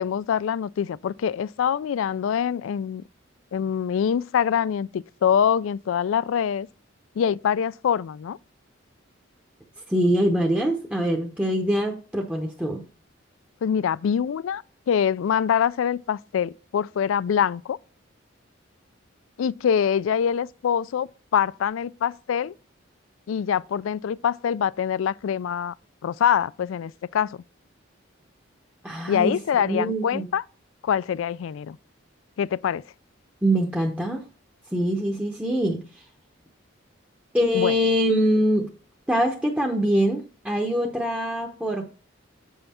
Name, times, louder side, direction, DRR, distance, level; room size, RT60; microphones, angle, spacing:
voice 1, 0.0-3.0 3.5-6.7 7.2-8.4 13.6-17.8 19.4-22.5 23.3-25.7 26.0-27.4 29.1-30.4 30.8-31.8 32.4-32.8 37.5-37.8, left 8 dB, 80° left, 0.3 m, -24 dB
voice 2, 9.9-12.8 28.8-30.3 33.4-34.2 34.7-36.0 37.3-38.7 39.1-41.8, equal, 5° right, 0.7 m, -24 dB
8.0 x 5.5 x 4.2 m
head